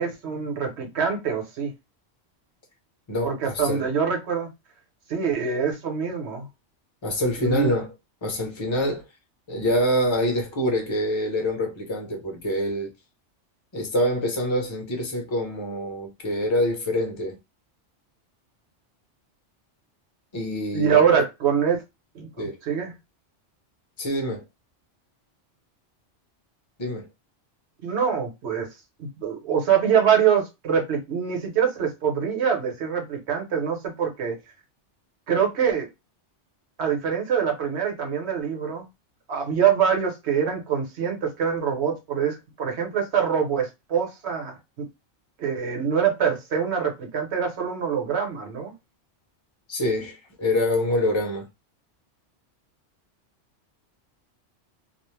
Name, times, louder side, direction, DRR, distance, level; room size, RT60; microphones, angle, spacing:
voice 1, 0.0-1.7 3.2-4.5 5.1-6.5 7.4-7.7 20.7-21.8 22.1-22.9 27.8-28.7 29.0-34.4 35.3-35.9 36.8-38.9 39.3-44.9 45.4-48.7, right 7 dB, 65° right, 1.1 m, -24 dB
voice 2, 3.1-3.8 7.0-7.9 8.2-9.0 9.5-12.9 13.7-17.4 20.3-21.0 22.4-22.6 24.0-24.4 26.8-27.1 49.7-51.5, left 1 dB, 30° left, 0.7 m, -25 dB
2.5 x 2.0 x 3.1 m
omnidirectional pair, 1.2 m